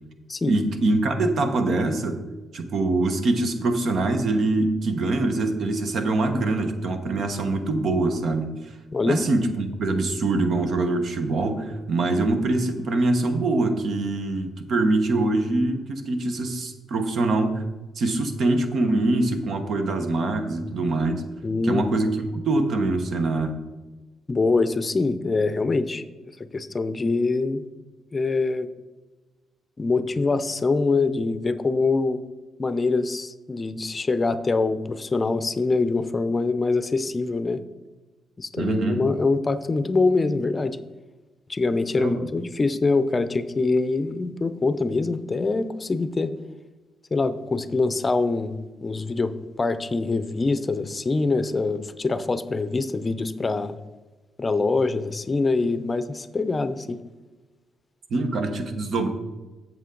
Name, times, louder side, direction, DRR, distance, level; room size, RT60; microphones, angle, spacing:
voice 1, 0.4-2.2 2.5-8.5 9.0-17.6 17.9-21.2 21.6-23.5 38.6-39.1 41.9-42.2 58.1-59.1, right 2 dB, 65° right, 7 dB, 1.1 m, -24 dB
voice 2, 8.9-9.2 21.4-22.0 24.3-26.0 26.5-27.6 28.1-28.7 29.8-32.2 32.6-37.6 38.4-40.8 41.5-46.3 47.1-53.8 54.4-57.0, left 3 dB, 30° left, 13 dB, 0.5 m, -24 dB
8.1 x 7.1 x 3.8 m, 1.2 s
cardioid pair, 80°, 0 cm